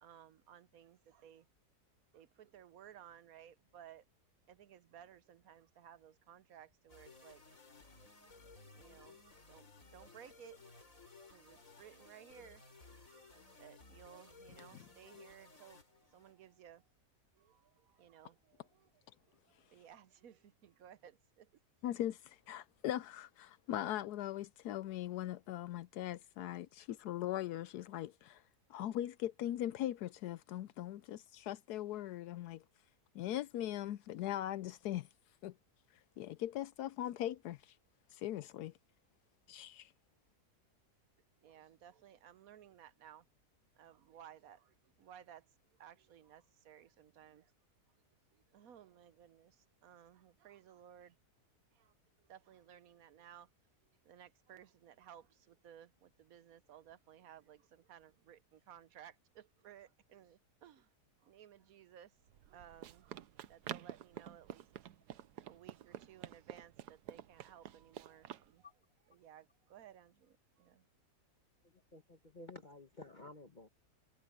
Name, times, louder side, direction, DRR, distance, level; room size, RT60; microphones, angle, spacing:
voice 1, 0.0-1.5 2.1-4.0 4.5-7.4 7.8-10.6 11.3-16.8 17.3-18.9 19.2-21.5 41.4-43.2 43.7-45.5 45.7-47.5 48.3-51.2 51.7-53.5 54.0-60.9 61.2-62.2 62.4-64.6 65.5-68.7 69.1-70.9, right 10 dB, 65° right, 1.2 m, -59 dB
sound 1, 6.9-16.6, left 3 dB, 55° left, 5.1 m, -59 dB
voice 2, 21.8-28.4 28.7-32.6 33.1-35.1 35.4-35.5 36.2-37.8 38.1-38.7 39.5-39.9, left 12 dB, 80° left, 1.1 m, -40 dB
Run, 62.3-68.5, right 11 dB, 90° right, 1.3 m, -49 dB
voice 3, 71.9-73.7, left 2 dB, 30° left, 1.2 m, -52 dB
omnidirectional pair, 1.7 m